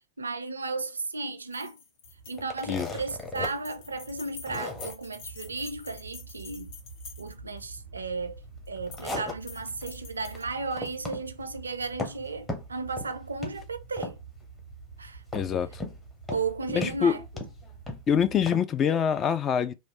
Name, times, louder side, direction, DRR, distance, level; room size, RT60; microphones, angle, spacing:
voice 1, 0.2-1.8 2.3-6.8 7.2-14.2 15.0-15.2 16.3-17.4, right 3 dB, 75° right, 0.4 m, -34 dB
sound 1, 1.5-7.6 8.7-9.1 9.4-10.9, left 5 dB, 50° left, 0.9 m, -47 dB
sound 2, 2.0-18.4, right 4 dB, 80° left, 1.6 m, -48 dB
sound 3, 2.4-3.5 3.9-4.0 4.5-4.9 8.6-9.9 10.2-10.4 10.7-11.3 11.5-12.2 12.5-13.1 13.4-13.6 14.0-14.4 15.3-16.0 16.3-16.5 16.8-18.0 18.5-18.6, left 2 dB, 10° left, 0.9 m, -36 dB
voice 2, 15.3-15.8 16.7-17.2 18.1-19.7, left 7 dB, 25° left, 0.4 m, -25 dB
3.1 x 2.4 x 2.7 m
figure-of-eight pair, 90°, 0 cm